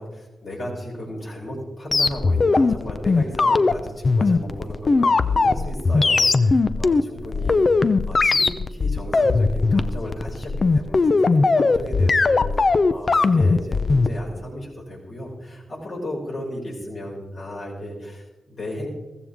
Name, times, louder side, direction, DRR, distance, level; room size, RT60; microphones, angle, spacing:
voice 1, 0.0-18.9, left 1 dB, 65° left, -4 dB, 5.8 m, -34 dB
sound 1, 1.9-14.1, left 3 dB, 45° left, 0.6 m, -19 dB
15.0 x 14.0 x 3.6 m, 1.1 s
cardioid pair, 50°, 0 cm